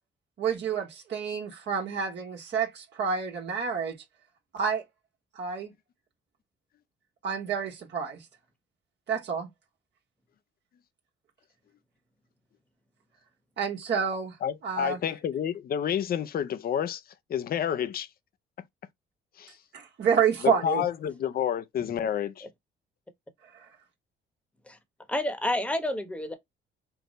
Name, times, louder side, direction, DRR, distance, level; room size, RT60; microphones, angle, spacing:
voice 1, 0.4-4.0 4.5-4.8 5.3-5.7 7.2-8.2 9.1-9.5 13.6-14.4 14.6-15.0 19.7-20.8 23.5-23.7, right 6 dB, 60° right, 1.3 m, -29 dB
voice 2, 14.4-17.0 17.3-18.1 19.4-19.6 20.4-22.5, left 9 dB, 50° left, 0.5 m, -29 dB
voice 3, 25.1-26.3, left 1 dB, 5° left, 1.0 m, -29 dB
4.5 x 2.6 x 3.1 m
cardioid pair, 90°, 20 cm